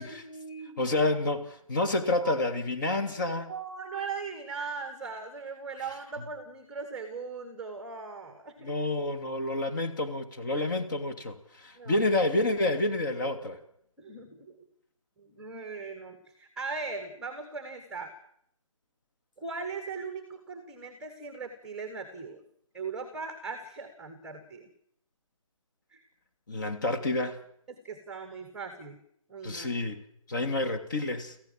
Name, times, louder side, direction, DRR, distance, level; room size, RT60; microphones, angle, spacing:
voice 1, 0.0-0.9 2.2-2.3 3.5-8.7 10.5-10.7 11.8-12.0 14.0-14.5 15.2-18.1 19.4-22.4 22.7-24.7 25.9-26.0 27.7-29.0 29.3-29.7, right 4 dB, 5° right, 7 dB, 1.4 m, -39 dB
voice 2, 0.8-3.5 8.6-13.6 26.5-27.4 29.4-30.0 30.3-31.3, left 2 dB, 35° left, 7 dB, 2.5 m, -29 dB
26.5 x 15.0 x 7.6 m, 0.69 s
figure-of-eight pair, 165°, 18 cm